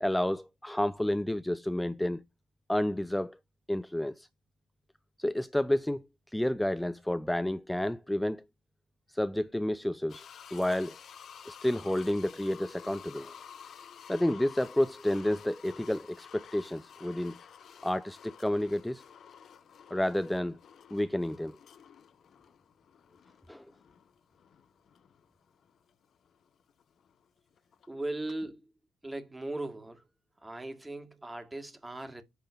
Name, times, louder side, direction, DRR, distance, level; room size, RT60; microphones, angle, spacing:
voice 1, 0.0-2.2 2.7-3.4 3.7-4.3 5.2-8.4 9.1-10.2 10.5-11.0 11.5-13.3 14.1-17.4 17.8-19.0 19.9-20.6 20.9-21.6 23.5-23.6, left 1 dB, 5° left, 0.5 m, -30 dB
sound 1, 10.1-27.9 28.3-28.4, left 8 dB, 50° left, 0.7 m, -52 dB
voice 2, 27.9-28.7 29.0-30.0 30.4-32.2, right 2 dB, 15° right, 1.9 m, -38 dB
10.0 x 3.7 x 3.5 m
figure-of-eight pair, 50°, 0 cm